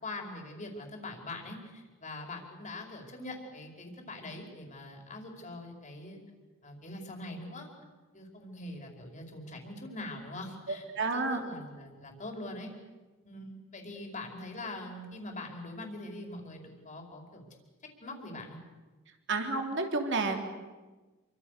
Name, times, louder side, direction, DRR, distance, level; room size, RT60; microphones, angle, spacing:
voice 1, 0.0-6.2 6.6-7.7 8.1-10.8 11.1-12.7 13.2-17.4 18.0-18.6, left 2 dB, 35° left, 2 dB, 5.0 m, -43 dB
voice 2, 10.7-11.4 19.3-20.5, right 3 dB, 60° right, 4 dB, 3.3 m, -30 dB
28.0 x 25.0 x 6.7 m, 1.2 s
head